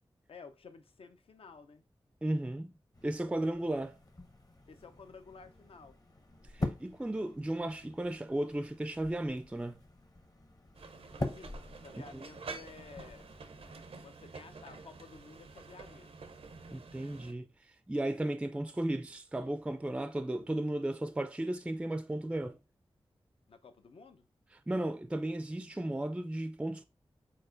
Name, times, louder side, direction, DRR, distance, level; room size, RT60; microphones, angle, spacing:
voice 1, 0.3-1.8 4.7-6.0 11.2-13.3 14.0-16.1 23.5-24.3, left 4 dB, 75° left, 0.5 m, -53 dB
voice 2, 2.2-2.8 3.0-4.0 6.5-9.8 12.1-12.2 16.7-17.5 17.9-22.6 24.7-26.8, right 1 dB, 10° right, 0.3 m, -35 dB
sound 1, 2.9-13.8, left 2 dB, 40° left, 0.9 m, -44 dB
sound 2, 10.7-17.3, right 4 dB, 85° right, 0.6 m, -49 dB
4.7 x 4.2 x 2.5 m
wide cardioid pair, 65°, 10 cm